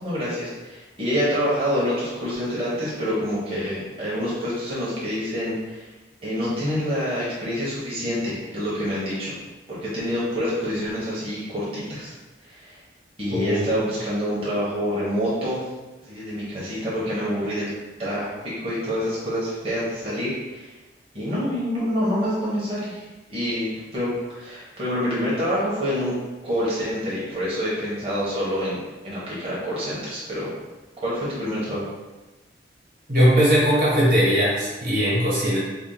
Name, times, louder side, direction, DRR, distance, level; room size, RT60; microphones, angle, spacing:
voice 1, 0.0-5.9 6.2-9.4 9.7-12.2 12.4-12.8 13.2-15.6 16.0-17.7 18.0-20.7 21.1-23.0 23.3-26.1 26.4-30.5 31.0-31.9, equal, 30° right, -8 dB, 1.0 m, -27 dB
voice 2, 13.3-13.7 33.1-35.6, equal, 50° right, -8 dB, 1.4 m, -19 dB
3.5 x 2.3 x 3.9 m, 1.2 s
head